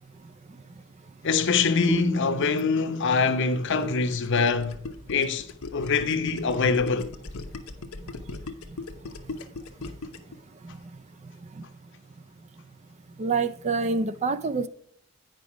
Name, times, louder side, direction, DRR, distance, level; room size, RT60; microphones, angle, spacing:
voice 1, 1.2-4.8 5.1-5.5 5.7-7.1, left 4 dB, 55° left, 0.8 m, -24 dB
sound 1, 1.9-5.3, right 1 dB, ahead, 0.8 m, -37 dB
Gurgling, 3.3-10.3, left 3 dB, 85° left, 0.9 m, -38 dB
voice 2, 13.2-14.7, right 4 dB, 30° right, 0.4 m, -26 dB
9.0 x 5.1 x 4.8 m
head